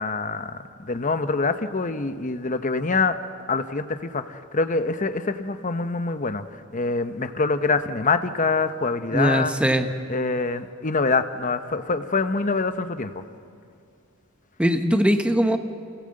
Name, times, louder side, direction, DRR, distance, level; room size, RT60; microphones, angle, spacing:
voice 1, 0.0-3.2 3.5-9.5 10.1-13.2, left 4 dB, 35° left, 10 dB, 0.9 m, -25 dB
voice 2, 9.1-9.9 14.6-15.6, equal, 5° right, 7 dB, 0.9 m, -20 dB
27.5 x 17.0 x 7.8 m, 2.3 s
head